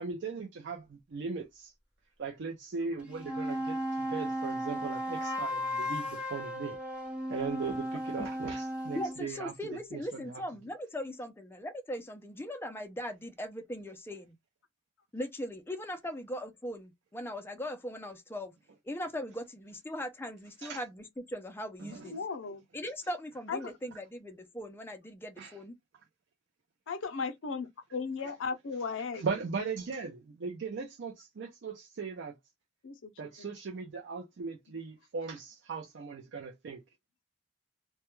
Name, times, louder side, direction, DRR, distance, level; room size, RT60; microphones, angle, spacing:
voice 1, 0.0-1.7 2.2-6.8 7.3-10.4 20.6-20.8 21.8-22.1 25.4-25.5 29.2-32.3 33.2-36.8, right 5 dB, 65° right, 0.4 m, -38 dB
sound 1, 3.0-9.2, equal, 5° right, 0.8 m, -35 dB
voice 2, 8.9-14.4 15.1-18.5 18.8-22.1 22.7-25.7, equal, 10° left, 0.4 m, -39 dB
voice 3, 22.0-22.6 23.5-23.6 26.9-29.2 32.8-33.1 33.4-33.5 34.7-34.8, left 5 dB, 75° left, 0.5 m, -36 dB
2.2 x 2.1 x 3.0 m
head